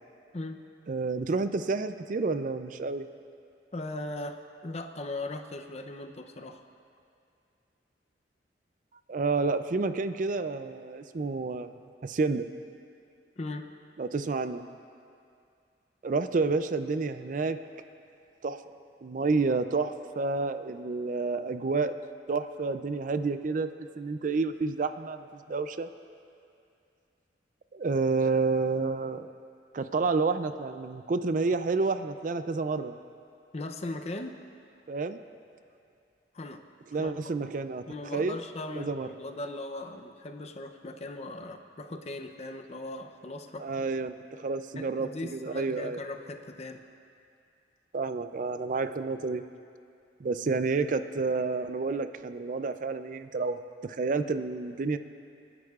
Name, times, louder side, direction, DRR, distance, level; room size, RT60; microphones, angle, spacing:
voice 1, 0.9-3.0 9.1-11.7 12.0-12.5 14.0-14.7 16.0-17.6 18.4-18.6 19.0-21.9 22.3-23.7 24.0-25.9 27.7-29.3 29.7-33.0 34.9-35.2 36.9-37.8 38.1-38.4 38.8-39.1 43.6-46.0 47.9-49.4 50.2-55.0, right 4 dB, 45° right, 10 dB, 0.4 m, -29 dB
voice 2, 3.7-6.6 13.4-13.7 33.5-34.4 36.3-36.6 37.0-37.5 37.9-44.0 44.8-46.8, left 2 dB, 40° left, 6 dB, 0.6 m, -39 dB
28.5 x 11.0 x 2.4 m, 2.4 s
head